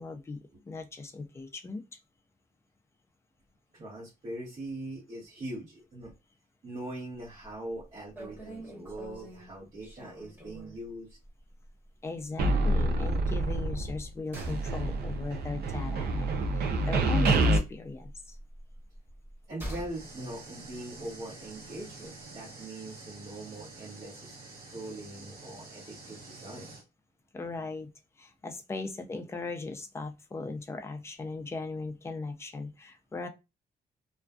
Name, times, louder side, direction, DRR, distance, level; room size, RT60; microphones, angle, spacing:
voice 1, 0.0-2.0 12.0-18.4 27.3-27.9 28.2-33.3, left 3 dB, 15° left, 6 dB, 0.3 m, -38 dB
voice 2, 3.7-6.1 6.6-11.1 19.5-24.3 24.7-26.7, right 1 dB, 45° right, -8 dB, 1.1 m, -41 dB
sound 1, 7.2-7.5 7.8-7.9 8.2-10.9 11.2-11.4 11.7-11.8 13.4-17.4 17.6-20.1 20.3-20.4, equal, 15° right, 1.1 m, -45 dB
sound 2, 12.4-14.1 14.3-17.6, right 2 dB, 90° right, 0.5 m, -27 dB
sound 3, 19.9-26.8, right 3 dB, 70° right, 1.0 m, -48 dB
2.4 x 2.2 x 2.3 m, 0.25 s
wide cardioid pair, 175°, 16 cm